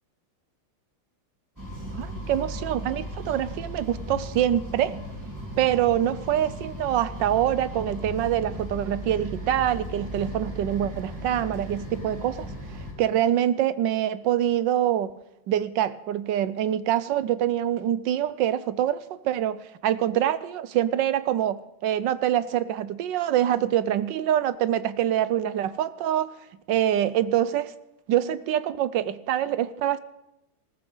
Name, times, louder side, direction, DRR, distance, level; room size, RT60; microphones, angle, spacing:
sound 1, 1.6-12.9, equal, 10° right, 4.0 m, -36 dB
voice 1, 1.9-4.9 5.6-12.5 13.0-15.1 15.5-26.3 26.7-27.7 28.1-30.0, right 11 dB, 75° right, 1.4 m, -25 dB
20.0 x 14.5 x 3.9 m
omnidirectional pair, 2.1 m